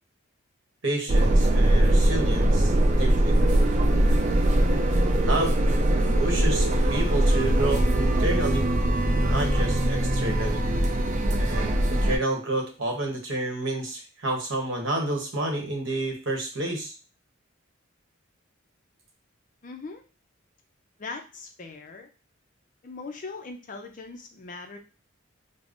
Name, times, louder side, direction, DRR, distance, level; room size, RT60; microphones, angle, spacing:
voice 1, 0.8-2.7 3.0-3.4 5.2-5.6 6.2-8.7 9.3-10.6 11.3-16.9, right 2 dB, 65° right, 1 dB, 0.9 m, -29 dB
sound 1, 1.1-12.2, right 1 dB, 35° right, 0.4 m, -21 dB
voice 2, 19.6-20.0 21.0-22.1 22.8-24.8, left 3 dB, 40° left, 4 dB, 0.4 m, -40 dB
5.0 x 2.0 x 2.5 m, 0.34 s
head